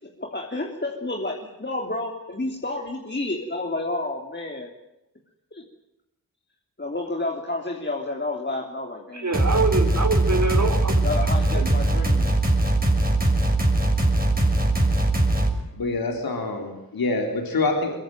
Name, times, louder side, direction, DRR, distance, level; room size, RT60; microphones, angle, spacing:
voice 1, 0.0-4.7 5.5-5.6 6.8-9.4 11.0-12.3, left 2 dB, 30° left, 2 dB, 3.3 m, -30 dB
voice 2, 9.1-11.0 11.5-11.7, right 3 dB, 55° right, 5 dB, 4.1 m, -25 dB
sound 1, 9.3-15.5, right 2 dB, 25° right, 6.3 m, -21 dB
voice 3, 15.8-18.0, left 3 dB, 85° left, 3 dB, 4.2 m, -26 dB
22.5 x 22.0 x 9.2 m, 0.91 s
cardioid pair, 50°, 35 cm